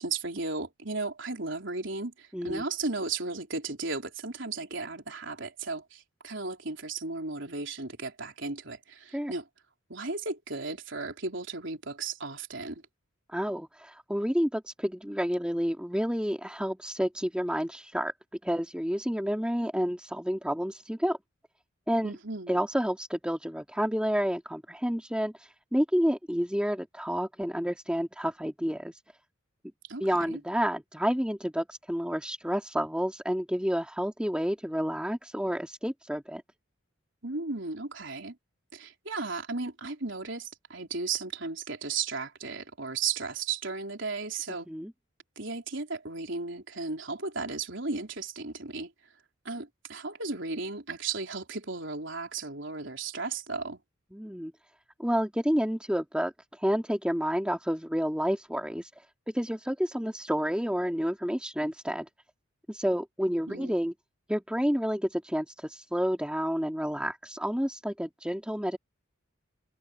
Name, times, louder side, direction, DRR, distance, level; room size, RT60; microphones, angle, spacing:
voice 1, 0.0-9.5 9.9-12.8 22.0-22.6 29.9-30.4 37.2-38.4 38.7-44.7 45.4-48.9 49.4-53.8 63.5-63.9, right 4 dB, 60° right, 4.1 m, -35 dB
voice 2, 2.3-2.6 9.1-9.3 13.3-18.1 18.4-21.2 21.9-22.1 22.5-25.3 25.7-28.9 30.0-36.4 44.7-44.9 54.1-54.5 55.0-56.3 56.6-58.9 59.3-62.1 62.7-63.9 64.3-68.8, equal, 5° right, 2.4 m, -29 dB
head